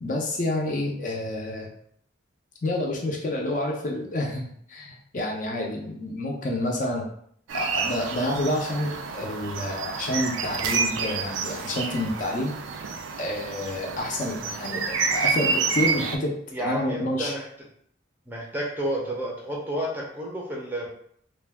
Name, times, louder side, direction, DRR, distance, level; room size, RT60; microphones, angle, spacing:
voice 1, 0.0-1.7 2.6-7.1 7.5-12.5 13.2-16.3 16.6-17.3, left 1 dB, 40° left, 0 dB, 0.5 m, -29 dB
sound 1, 7.5-16.2, right 5 dB, 75° right, 0.3 m, -29 dB
voice 2, 16.5-17.5 18.3-20.9, equal, 10° right, -4 dB, 0.5 m, -31 dB
2.5 x 2.2 x 3.3 m, 0.65 s
head